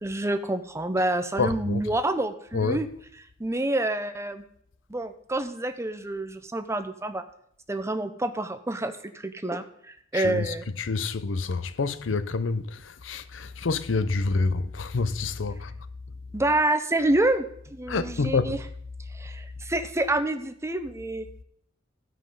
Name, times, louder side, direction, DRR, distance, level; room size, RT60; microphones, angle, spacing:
voice 1, 0.0-2.9 3.4-4.4 4.9-7.2 7.7-9.6 10.1-10.6 16.3-18.6 19.1-21.3, right 2 dB, 15° right, 0.7 m, -27 dB
voice 2, 1.4-1.8 2.5-2.8 10.1-15.7 17.9-18.6, left 4 dB, 85° left, 0.6 m, -28 dB
15.0 x 5.1 x 5.4 m
head